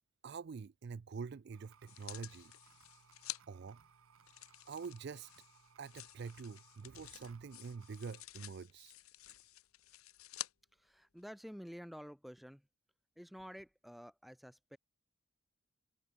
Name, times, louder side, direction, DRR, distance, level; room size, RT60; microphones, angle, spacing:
voice 1, 0.2-2.5 3.5-3.8 4.7-5.3 5.8-9.0, right 5 dB, 50° right, 0.4 m, -46 dB
sound 1, 1.5-8.2, right 6 dB, 80° right, 0.9 m, -66 dB
sound 2, 1.9-3.4 4.2-10.5 11.2-11.3, left 14 dB, 85° left, 1.0 m, -51 dB
voice 2, 10.7-12.7 13.2-14.8, equal, ahead, 0.9 m, -51 dB
head